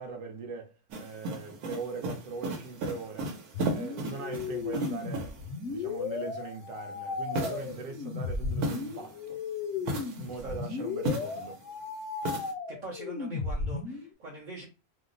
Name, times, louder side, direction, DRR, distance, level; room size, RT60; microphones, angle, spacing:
voice 1, 0.0-3.4 3.7-5.4 5.6-9.4 10.2-11.6, right 4 dB, 65° right, 1.0 m, -40 dB
sound 1, 0.9-5.5 7.3-9.3 9.8-11.6 12.2-12.5, right 1 dB, 90° right, 1.2 m, -36 dB
sound 2, 3.5-14.1, left 4 dB, 65° left, 0.8 m, -35 dB
voice 2, 10.2-10.9 12.7-14.7, right 2 dB, 45° right, 0.6 m, -44 dB
2.8 x 2.0 x 3.8 m
omnidirectional pair, 1.5 m